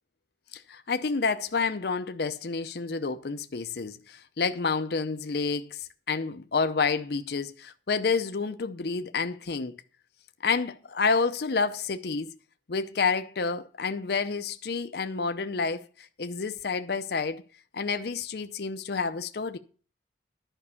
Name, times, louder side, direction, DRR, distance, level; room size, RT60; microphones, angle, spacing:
voice 1, 0.5-9.7 10.4-12.3 12.7-17.4 17.7-19.6, left 4 dB, 60° left, 0.6 m, -29 dB
11.0 x 5.4 x 6.9 m
head